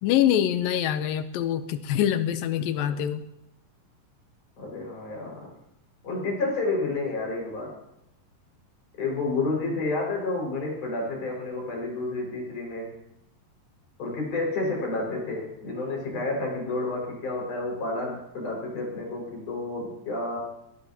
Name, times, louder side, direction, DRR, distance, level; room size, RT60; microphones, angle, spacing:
voice 1, 0.0-3.2, left 10 dB, 90° left, 10 dB, 2.6 m, -24 dB
voice 2, 4.6-5.5 6.0-7.7 9.0-12.9 14.0-20.4, left 2 dB, 60° left, -1 dB, 7.2 m, -30 dB
21.0 x 20.0 x 2.9 m, 0.82 s
omnidirectional pair, 4.0 m